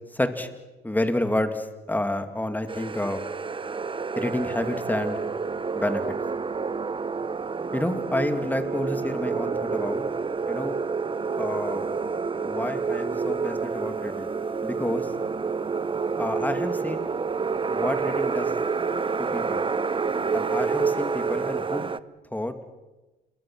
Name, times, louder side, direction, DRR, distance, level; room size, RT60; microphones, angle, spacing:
voice 1, 0.1-0.5 0.8-3.2 4.2-5.2 5.7-6.0 7.7-10.1 10.5-10.8 11.4-11.8 12.4-14.3 14.6-15.1 16.2-17.1 17.7-18.5 19.2-19.6 20.3-21.9 22.3-22.5, left 1 dB, 10° left, 8 dB, 2.4 m, -29 dB
sound 1, 2.7-22.0, right 5 dB, 25° right, 0.8 m, -28 dB
27.5 x 22.5 x 6.2 m, 1.1 s
cardioid pair, 90°, 20 cm